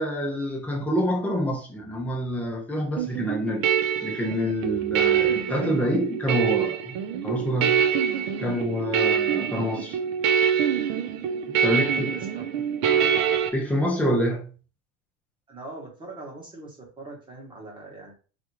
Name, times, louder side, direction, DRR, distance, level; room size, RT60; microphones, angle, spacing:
voice 1, 0.0-3.7 4.0-7.0 7.2-7.9 8.4-10.0 11.6-12.1 13.5-14.5, equal, 5° left, 0.4 m, -27 dB
sound 1, 3.0-13.5, right 8 dB, 80° right, 0.8 m, -25 dB
voice 2, 11.7-12.4 15.5-18.1, right 2 dB, 10° right, 0.9 m, -42 dB
3.5 x 2.5 x 4.4 m
cardioid pair, 180°, 38 cm